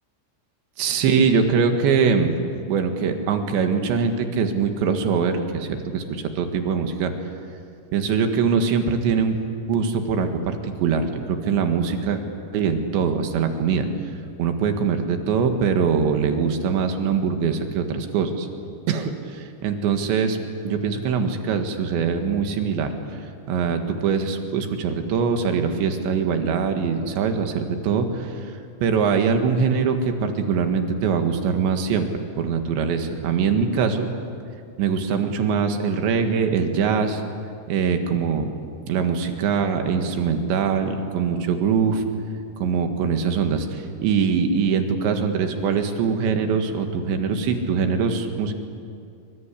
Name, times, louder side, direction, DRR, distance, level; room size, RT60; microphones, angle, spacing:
voice 1, 0.8-2.4 2.7-7.1 7.9-9.4 9.7-12.2 12.5-13.9 14.4-18.5 18.9-20.4 20.7-22.9 23.5-28.5 28.8-32.1 32.4-34.1 34.8-37.2 37.7-38.5 38.9-42.0 42.6-48.5, right 6 dB, 65° right, 6 dB, 3.7 m, -22 dB
27.5 x 24.5 x 8.4 m, 2.4 s
omnidirectional pair, 5.9 m